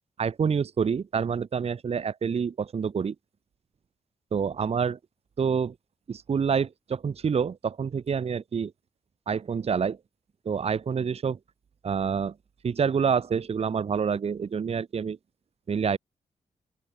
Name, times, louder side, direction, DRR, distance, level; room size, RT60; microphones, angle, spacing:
voice 1, 0.2-3.1 4.3-5.0 5.4-5.7 6.1-8.7 9.3-10.0 10.5-11.4 11.8-12.3 12.6-15.2 15.7-16.0, right 6 dB, 45° right, 0.8 m, -27 dB
open air
supercardioid pair, 50°, 14 cm